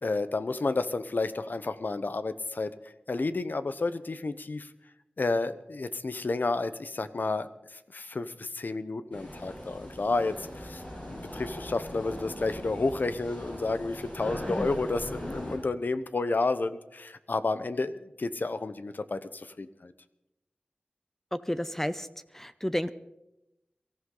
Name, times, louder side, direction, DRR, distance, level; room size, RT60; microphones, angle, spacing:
voice 1, 0.0-2.7 3.1-4.7 5.2-19.9, left 3 dB, 70° left, 12 dB, 0.8 m, -31 dB
sound 1, 9.1-15.6, equal, 45° left, 7.4 m, -40 dB
voice 2, 21.3-22.1 22.3-22.9, equal, 10° left, 12 dB, 0.6 m, -31 dB
23.0 x 14.5 x 3.9 m, 0.90 s
wide cardioid pair, 70°, 3 cm